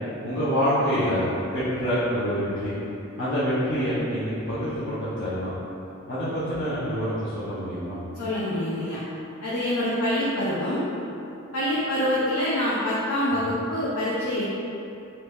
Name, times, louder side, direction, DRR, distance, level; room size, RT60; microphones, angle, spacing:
voice 1, 0.2-1.3 1.5-2.7 3.2-5.6 6.1-8.0 13.3-13.6, equal, 55° left, -12 dB, 0.8 m, -26 dB
voice 2, 8.2-9.0 9.4-10.8 11.5-14.4, left 1 dB, 90° left, -8 dB, 0.5 m, -25 dB
2.8 x 2.7 x 3.4 m, 2.8 s
head